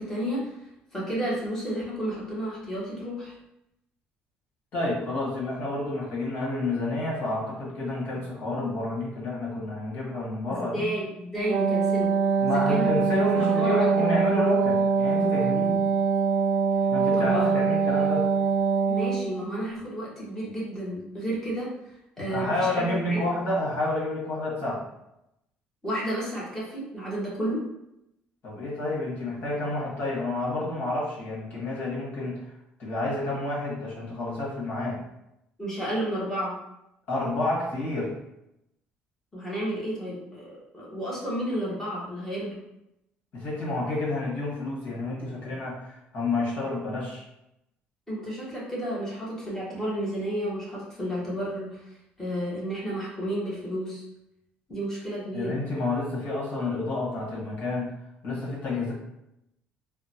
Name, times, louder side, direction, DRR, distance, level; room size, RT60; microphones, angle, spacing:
voice 1, 0.0-3.3 10.5-12.1 12.4-13.1 13.3-14.1 17.1-17.6 18.9-21.7 22.2-23.4 25.8-27.6 35.6-36.5 39.3-42.6 48.1-51.8 52.2-54.0 54.7-55.5, right 1 dB, 10° left, -6 dB, 1.1 m, -32 dB
voice 2, 4.7-10.8 12.4-15.8 16.9-18.3 22.2-24.8 28.4-32.4 32.8-35.0 37.1-38.1 43.3-47.2 55.3-57.9 58.2-58.9, left 2 dB, 55° left, -6 dB, 1.5 m, -29 dB
Wind instrument woodwind instrument, 11.4-19.3, right 5 dB, 55° right, 0.3 m, -23 dB
3.7 x 2.1 x 2.8 m, 0.84 s
cardioid pair, 140°, 4 cm